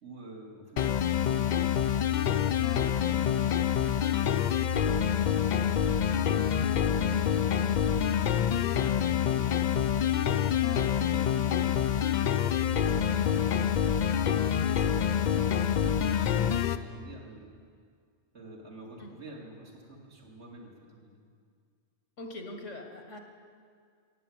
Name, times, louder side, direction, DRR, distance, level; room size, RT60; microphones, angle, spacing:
voice 1, 0.0-1.4 2.5-6.3 6.9-8.1 8.7-12.0 12.8-13.7 14.4-17.5 18.3-21.2, right 2 dB, 65° right, -3 dB, 2.9 m, -47 dB
sound 1, 0.8-16.8, left 9 dB, 60° left, 0.5 m, -26 dB
voice 2, 22.2-23.2, left 1 dB, 90° left, 4 dB, 1.8 m, -42 dB
16.0 x 7.8 x 8.8 m, 2.1 s
omnidirectional pair, 1.2 m